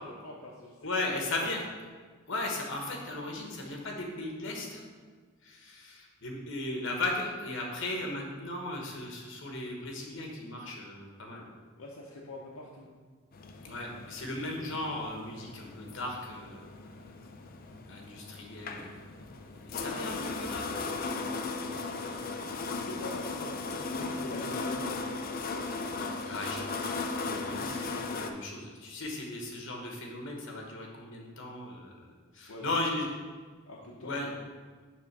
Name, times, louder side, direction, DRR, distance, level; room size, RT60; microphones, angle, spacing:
voice 1, 0.0-1.6 11.8-12.9 21.4-21.9 22.7-25.0 28.0-28.1 32.5-32.7 33.7-34.3, left 1 dB, 80° left, -3 dB, 0.8 m, -45 dB
voice 2, 0.8-1.6 2.3-4.9 5.4-11.4 13.6-16.7 17.9-18.9 19.7-20.8 21.7-22.1 26.2-31.9 32.3-33.1 34.0-34.3, left 2 dB, 60° left, 0 dB, 1.1 m, -37 dB
sound 1, 13.3-28.3, left 3 dB, 45° left, 0.5 m, -37 dB
6.1 x 3.4 x 6.0 m, 1.5 s
head